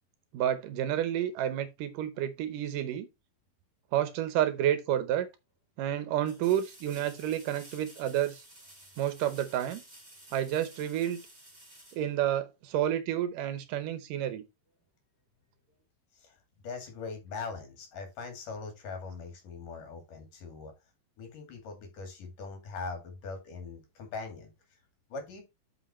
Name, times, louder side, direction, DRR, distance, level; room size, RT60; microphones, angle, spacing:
voice 1, 0.3-3.1 3.9-5.3 5.8-8.4 9.0-9.8 10.3-11.2 11.9-14.4, right 11 dB, 75° right, 2.3 m, -30 dB
sound 1, 4.8-4.9 6.2-12.8 15.7-15.8, right 1 dB, 20° right, 3.6 m, -53 dB
voice 2, 16.2-20.7 21.2-24.5 25.1-25.4, left 4 dB, 65° left, 3.8 m, -41 dB
7.8 x 5.7 x 4.2 m
omnidirectional pair, 4.1 m